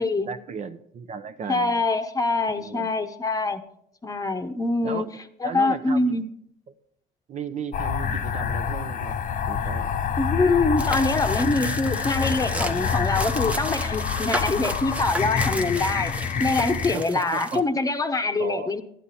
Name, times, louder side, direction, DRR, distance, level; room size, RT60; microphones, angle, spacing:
voice 1, 0.3-1.8 2.6-2.9 4.8-5.1 5.4-6.2 6.7-6.8 7.3-9.2 9.5-9.9 16.9-17.6 18.4-18.8, right 6 dB, 45° right, 10 dB, 0.7 m, -35 dB
voice 2, 1.5-3.6 4.0-5.1 5.4-6.3 10.2-16.1 16.4-18.8, left 3 dB, 20° left, 7 dB, 0.9 m, -24 dB
sound 1, 7.7-17.0, left 6 dB, 55° left, 0.8 m, -27 dB
sound 2, 10.8-17.6, right 1 dB, 10° right, 0.8 m, -34 dB
11.5 x 10.5 x 4.2 m, 0.70 s
cardioid pair, 110°, 17 cm